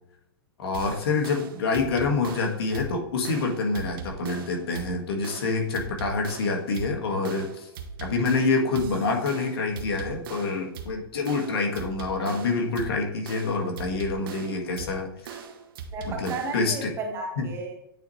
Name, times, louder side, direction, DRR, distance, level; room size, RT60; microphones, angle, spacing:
voice 1, 0.6-7.7 8.0-15.4 16.0-16.9 17.4-17.5, left 3 dB, 80° left, 2 dB, 1.8 m, -27 dB
sound 1, 0.7-16.7, right 6 dB, 65° right, 1.0 m, -40 dB
voice 2, 15.9-17.8, right 3 dB, 20° right, 1 dB, 1.4 m, -34 dB
8.9 x 4.2 x 3.2 m, 0.86 s
hypercardioid pair, 150°, 13 cm